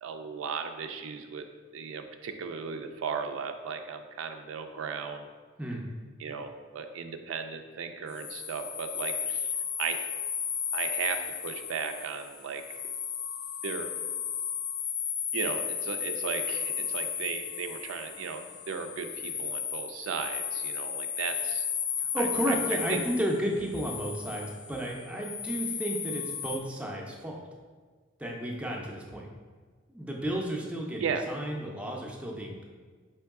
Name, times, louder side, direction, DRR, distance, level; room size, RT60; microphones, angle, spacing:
voice 1, 0.0-1.4 1.7-5.3 6.2-9.5 9.8-10.0 10.7-12.8 13.6-13.9 15.3-21.7 22.2-23.0 31.0-31.3, right 6 dB, 90° right, 6 dB, 0.4 m, -36 dB
sound 1, 8.1-26.6, left 7 dB, 80° left, 0.5 m, -34 dB
voice 2, 22.0-27.4 28.2-29.3 29.9-32.6, equal, 5° right, -1 dB, 0.4 m, -32 dB
4.5 x 3.0 x 3.5 m, 1.5 s
head